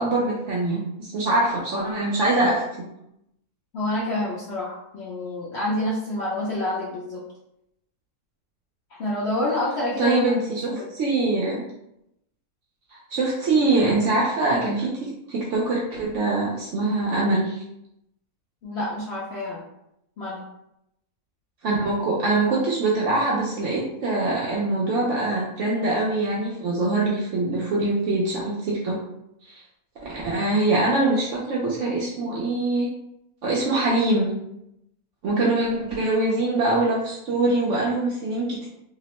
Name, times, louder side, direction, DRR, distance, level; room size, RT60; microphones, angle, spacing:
voice 1, 0.0-2.9 10.0-10.6 10.9-11.6 12.9-17.6 21.6-29.0 29.5-29.6 30.0-32.9 33.4-34.3 35.2-38.7, right 2 dB, 70° right, -4 dB, 0.7 m, -23 dB
voice 2, 3.7-7.2 8.9-10.2 10.8-10.9 18.6-19.6 20.2-20.4 35.3-35.5, left 1 dB, 65° left, -6 dB, 0.6 m, -28 dB
2.8 x 2.0 x 2.9 m, 0.81 s
omnidirectional pair, 1.7 m